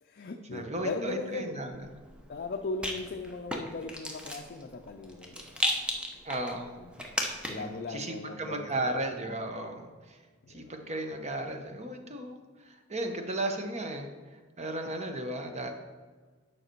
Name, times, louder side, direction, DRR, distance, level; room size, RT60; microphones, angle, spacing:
voice 1, 0.0-1.6 2.3-5.5 6.8-7.2 7.5-9.0 10.4-10.7, left 3 dB, 50° left, 4 dB, 0.5 m, -38 dB
voice 2, 0.5-1.7 6.2-6.8 7.5-10.2 10.5-14.1 14.6-15.7, right 1 dB, 35° right, 5 dB, 0.9 m, -35 dB
Rattle, 1.7-7.8, equal, 5° right, 0.8 m, -36 dB
9.3 x 5.8 x 4.5 m, 1.4 s
head